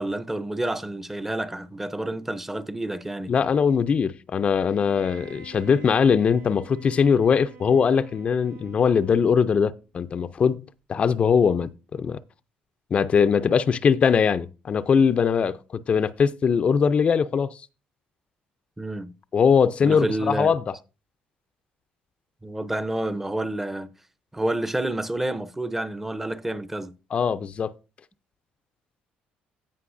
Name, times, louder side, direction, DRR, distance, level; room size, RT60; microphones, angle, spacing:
voice 1, 0.0-3.3 18.8-19.1 19.8-20.5 22.4-23.9 24.3-26.9, right 1 dB, 10° right, 0.6 m, -29 dB
voice 2, 3.3-10.6 10.9-12.2 12.9-17.5 19.3-20.7 27.1-27.7, left 6 dB, 40° left, 0.4 m, -21 dB
Bowed string instrument, 4.5-9.6, right 4 dB, 75° right, 1.2 m, -48 dB
16.0 x 5.4 x 2.6 m
cardioid pair, 110°, 3 cm